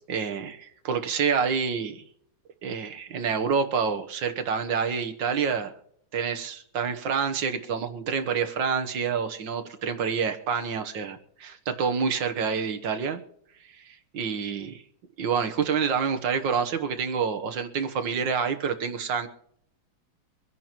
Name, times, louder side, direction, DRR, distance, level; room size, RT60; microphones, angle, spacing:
voice 1, 0.1-2.0 2.6-5.7 6.1-13.2 13.7-14.7 15.2-19.3, right 6 dB, 60° right, 7 dB, 1.7 m, -28 dB
25.0 x 11.0 x 3.0 m, 0.70 s
omnidirectional pair, 2.4 m